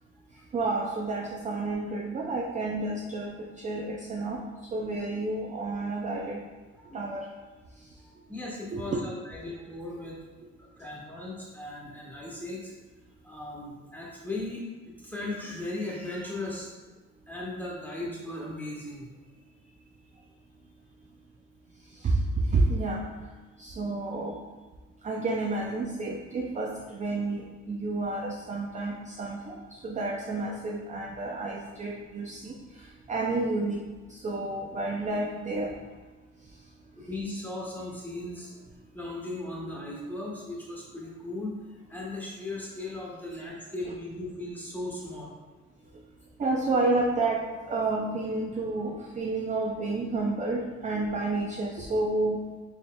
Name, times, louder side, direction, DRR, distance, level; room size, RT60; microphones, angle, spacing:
voice 1, 0.5-4.4 4.7-6.4 6.9-7.3 7.8-7.9 8.7-9.0 21.9-23.1 23.6-24.4 25.0-33.8 34.1-35.8 46.4-52.4, right 2 dB, 25° right, 0 dB, 0.4 m, -30 dB
voice 2, 8.0-10.2 10.6-12.7 13.2-14.6 15.0-16.7 17.3-19.1 36.9-38.6 38.9-41.6 41.9-45.3 45.8-45.9, left 2 dB, 5° left, -5 dB, 1.1 m, -37 dB
4.1 x 3.5 x 2.2 m, 1.3 s
cardioid pair, 90°, 30 cm